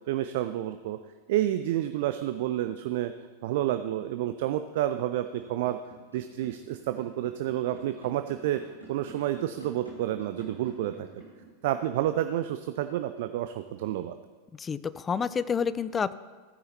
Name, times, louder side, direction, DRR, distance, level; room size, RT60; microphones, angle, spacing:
voice 1, 0.1-1.0 1.3-3.1 3.4-5.8 6.1-8.6 8.9-11.1 11.6-14.1, right 13 dB, 50° right, 10 dB, 0.4 m, -29 dB
sound 1, 5.2-11.4, right 2 dB, 90° left, 3.1 m, -47 dB
voice 2, 14.6-16.1, left 6 dB, 20° left, 16 dB, 0.4 m, -29 dB
15.5 x 9.4 x 2.8 m, 1.5 s
figure-of-eight pair, 90°, 0 cm